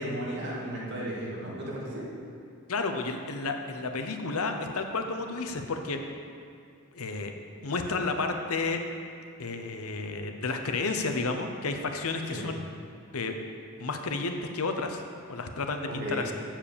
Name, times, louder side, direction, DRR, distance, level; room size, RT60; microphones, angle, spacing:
voice 1, 0.0-2.1 12.3-12.5 15.9-16.2, right 1 dB, 50° right, -5 dB, 2.4 m, -34 dB
voice 2, 2.7-6.0 6.9-7.3 7.6-8.8 9.4-12.6 13.1-13.4 13.8-16.3, left 3 dB, 75° left, 5 dB, 0.8 m, -31 dB
7.4 x 7.4 x 6.9 m, 2.3 s
head